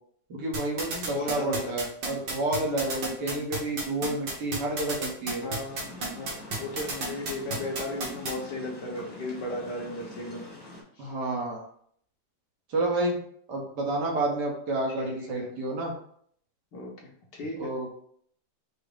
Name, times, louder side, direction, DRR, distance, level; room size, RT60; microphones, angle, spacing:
voice 1, 0.3-5.5 11.0-11.6 12.7-13.2 13.5-15.9 17.6-17.9, right 2 dB, 65° right, -1 dB, 1.6 m, -30 dB
sound 1, 0.5-8.3, right 3 dB, 85° right, 1.9 m, -31 dB
voice 2, 0.8-1.8 2.9-3.0 3.2-3.4 5.4-10.5 11.0-11.1 15.0-15.5 16.7-17.7, left 2 dB, 70° left, -2 dB, 1.7 m, -36 dB
sound 2, 5.7-10.8, left 2 dB, 15° left, 0.9 m, -45 dB
5.0 x 2.0 x 4.8 m, 0.65 s
omnidirectional pair, 2.0 m